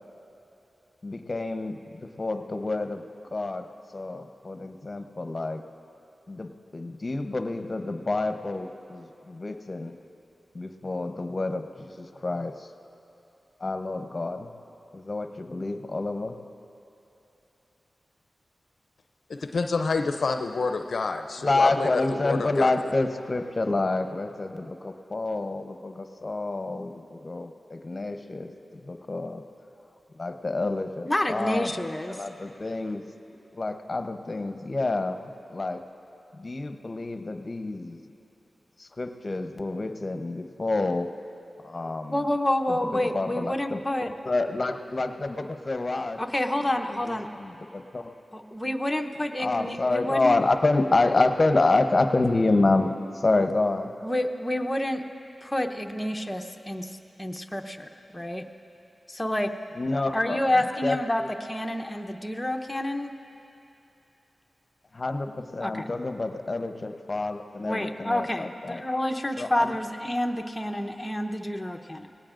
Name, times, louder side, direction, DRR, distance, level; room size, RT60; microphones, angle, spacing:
voice 1, 1.0-1.8 2.0-3.0 3.3-3.6 3.9-5.6 6.3-9.9 10.5-12.7 13.6-14.5 14.9-16.4 21.4-29.4 30.1-31.7 32.1-33.0 33.5-35.2 35.5-35.8 36.3-38.0 38.8-41.1 41.6-42.2 42.7-43.8 44.2-46.2 46.9-48.1 49.4-53.9 59.8-60.4 60.8-61.3 64.9-68.8 69.4-69.7, left 2 dB, 45° left, 7 dB, 0.8 m, -28 dB
voice 2, 19.3-22.7, left 4 dB, 75° left, 5 dB, 0.5 m, -28 dB
voice 3, 31.1-32.2 42.1-44.1 46.2-47.3 48.3-50.4 54.0-55.0 55.4-56.9 57.2-58.4 59.1-59.5 60.1-63.2 65.6-65.9 67.6-72.1, left 1 dB, 15° left, 4 dB, 0.8 m, -28 dB
20.5 x 17.5 x 2.5 m, 3.0 s
cardioid pair, 45°, 0 cm